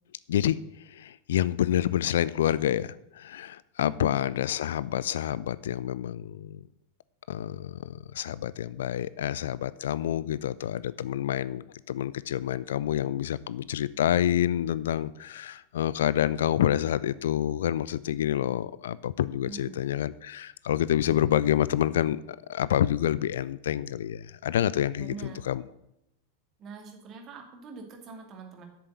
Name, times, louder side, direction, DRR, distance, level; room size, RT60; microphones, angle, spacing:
voice 1, 0.3-0.6 0.9-6.6 7.3-25.6, left 11 dB, 60° left, 19 dB, 0.3 m, -28 dB
voice 2, 19.4-19.8 25.0-25.5 26.6-28.7, right 4 dB, 30° right, 3 dB, 2.3 m, -44 dB
8.2 x 6.8 x 8.0 m, 0.83 s
figure-of-eight pair, 90°, 0 cm